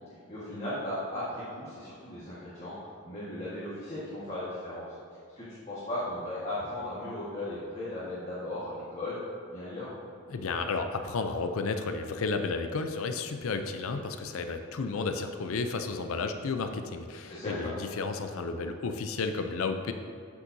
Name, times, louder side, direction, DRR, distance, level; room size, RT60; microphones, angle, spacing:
voice 1, 0.3-4.8 5.4-9.2 9.5-9.9 17.3-17.7, left 1 dB, 30° left, -10 dB, 1.5 m, -36 dB
voice 2, 10.3-19.9, left 4 dB, 70° left, 7 dB, 0.5 m, -32 dB
8.3 x 7.2 x 2.7 m, 2.5 s
head